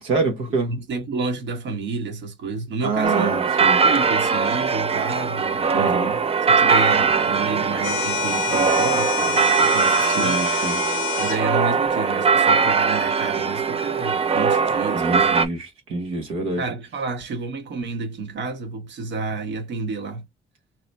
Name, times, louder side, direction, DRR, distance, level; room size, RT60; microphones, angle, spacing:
voice 1, 0.0-0.7 2.8-3.8 5.7-6.1 10.1-10.8 14.9-16.6, right 3 dB, 90° right, 1.2 m, -26 dB
voice 2, 0.7-3.4 3.6-6.2 6.5-10.5 11.2-15.4 16.6-20.2, right 4 dB, 65° right, 1.2 m, -30 dB
sound 1, 3.0-15.5, right 5 dB, 30° right, 0.5 m, -21 dB
sound 2, 7.8-11.4, left 11 dB, 70° left, 0.5 m, -27 dB
3.0 x 2.1 x 4.0 m
cardioid pair, 90°, 20 cm